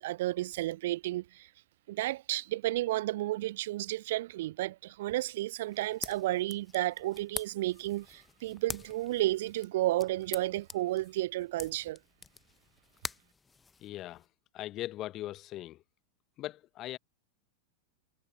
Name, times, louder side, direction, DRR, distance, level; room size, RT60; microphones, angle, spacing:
voice 1, 0.0-1.5 1.9-12.0, right 16 dB, 55° right, 0.7 m, -32 dB
sound 1, 5.7-14.3, left 4 dB, 15° left, 0.8 m, -46 dB
voice 2, 13.8-14.3 14.5-15.8 16.4-17.0, left 14 dB, 35° left, 1.1 m, -39 dB
figure-of-eight pair, 90°, 0 cm